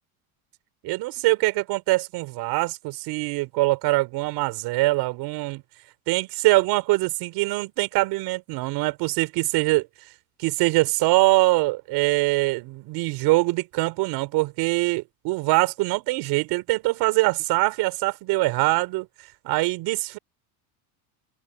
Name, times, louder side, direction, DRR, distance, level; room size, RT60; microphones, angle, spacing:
voice 1, 0.8-5.6 6.1-9.9 10.4-19.1 19.4-20.2, right 21 dB, 60° right, 4.0 m, -23 dB
open air
supercardioid pair, 120°, 44 cm